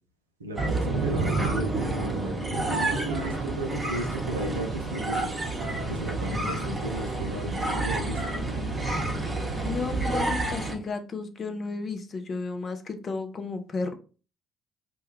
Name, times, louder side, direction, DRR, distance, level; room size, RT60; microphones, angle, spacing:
voice 1, 0.4-5.3 5.9-8.4, right 1 dB, 85° right, 4 dB, 0.4 m, -35 dB
sound 1, 0.5-10.7, right 2 dB, 25° right, 0.8 m, -29 dB
voice 2, 9.6-13.9, left 4 dB, 40° left, 7 dB, 0.4 m, -33 dB
2.2 x 2.2 x 2.8 m, 0.36 s
figure-of-eight pair, 50°, 0 cm